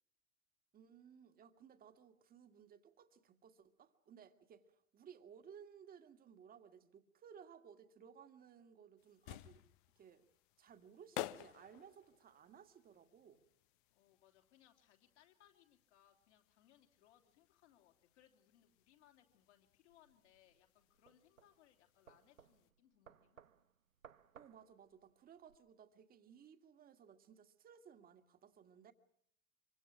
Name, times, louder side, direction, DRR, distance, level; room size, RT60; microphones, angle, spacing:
voice 1, 0.7-9.6 10.0-10.3 10.6-13.4 24.3-28.9, right 7 dB, 20° right, 1.9 m, -60 dB
sound 1, 9.0-22.7, left 15 dB, 40° left, 0.8 m, -54 dB
voice 2, 13.9-23.4, left 11 dB, 55° left, 3.4 m, -70 dB
sound 2, 19.9-25.6, right 8 dB, 70° right, 1.1 m, -64 dB
26.0 x 24.0 x 6.2 m
figure-of-eight pair, 95°, 41 cm